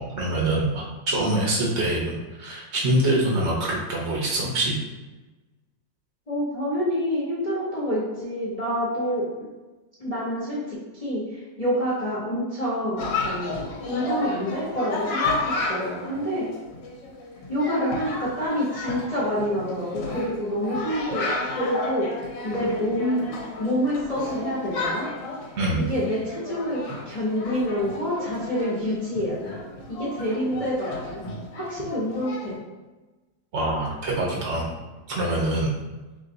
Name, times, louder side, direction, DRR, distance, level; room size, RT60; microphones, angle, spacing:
voice 1, 0.0-4.7 25.6-25.9 33.5-34.7 35.1-35.8, right 1 dB, 55° right, -3 dB, 0.8 m, -25 dB
voice 2, 6.3-9.2 10.0-16.5 17.5-23.3 23.6-25.1 25.7-29.5 29.9-31.2 31.5-32.5, equal, 30° left, -8 dB, 0.7 m, -27 dB
Chatter, 13.0-32.6, left 3 dB, 80° left, 1.4 m, -33 dB
3.2 x 3.1 x 3.8 m, 1.2 s
omnidirectional pair, 1.9 m